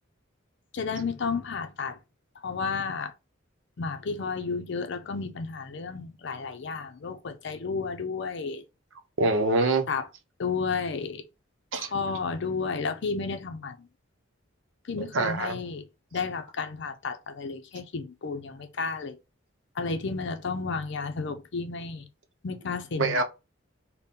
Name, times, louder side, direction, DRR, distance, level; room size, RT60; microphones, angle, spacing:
voice 1, 0.7-2.0 2.4-3.1 3.8-8.6 9.9-10.0 10.4-11.2 11.8-13.8 14.9-15.8 16.1-19.2 19.8-22.1 22.4-23.2, left 4 dB, 60° left, 0.5 m, -32 dB
voice 2, 9.2-9.9 11.7-11.9 15.1-15.6 23.0-23.2, right 2 dB, 70° right, 0.7 m, -24 dB
3.6 x 2.1 x 4.1 m
head